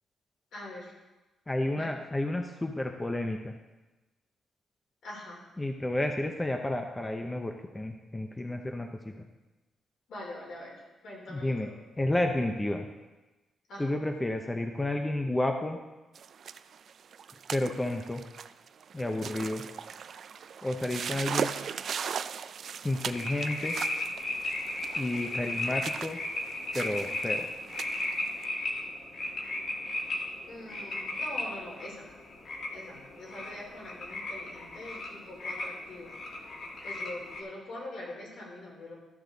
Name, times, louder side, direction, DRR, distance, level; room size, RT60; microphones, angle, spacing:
voice 1, 0.5-0.9 1.7-1.9 5.0-5.4 10.1-11.8 13.7-13.9 19.2-19.4 30.5-32.1 32.7-36.5 36.8-39.0, left 1 dB, 70° left, -3 dB, 3.7 m, -44 dB
voice 2, 1.5-3.5 5.6-9.3 11.3-11.7 12.0-12.9 13.8-15.8 17.5-18.2 18.9-19.6 20.6-21.5 22.8-23.8 25.0-26.2 26.7-27.5, left 1 dB, 15° left, 4 dB, 0.6 m, -31 dB
sound 1, 16.2-28.4, right 7 dB, 55° right, 0.3 m, -39 dB
sound 2, 22.8-37.4, left 2 dB, 55° left, 1.6 m, -36 dB
13.0 x 6.7 x 3.9 m, 1.1 s
cardioid pair, 135°, 0 cm